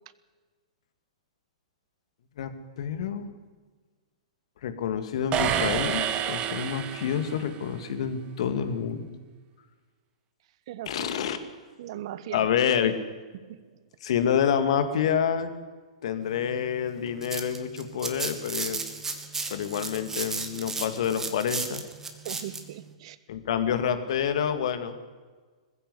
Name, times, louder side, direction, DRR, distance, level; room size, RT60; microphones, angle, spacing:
voice 1, 2.4-3.3 4.6-9.2 10.9-11.4 12.3-13.0 14.0-15.5 16.0-18.8 19.5-21.8 23.3-25.0, left 8 dB, 60° left, 10 dB, 2.2 m, -28 dB
sound 1, 5.3-7.6, right 9 dB, 30° right, 1.7 m, -28 dB
voice 2, 10.7-11.2 11.8-12.5 13.3-13.7 22.2-23.2, right 12 dB, 55° right, 16 dB, 1.2 m, -39 dB
sound 2, 17.0-22.6, right 4 dB, 10° right, 2.3 m, -34 dB
21.0 x 15.5 x 8.1 m, 1.4 s
hypercardioid pair, 120°, 4 cm